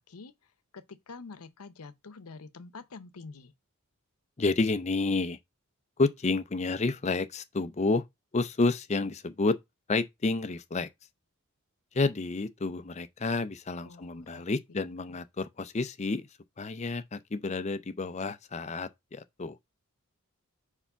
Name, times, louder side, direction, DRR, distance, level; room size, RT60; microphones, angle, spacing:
voice 1, 0.0-3.5 13.8-15.0, left 4 dB, 85° left, 0.7 m, -47 dB
voice 2, 4.4-5.4 6.0-8.0 8.3-9.6 9.9-10.9 11.9-16.3 16.6-19.6, left 3 dB, 30° left, 0.5 m, -30 dB
4.9 x 4.5 x 5.5 m
head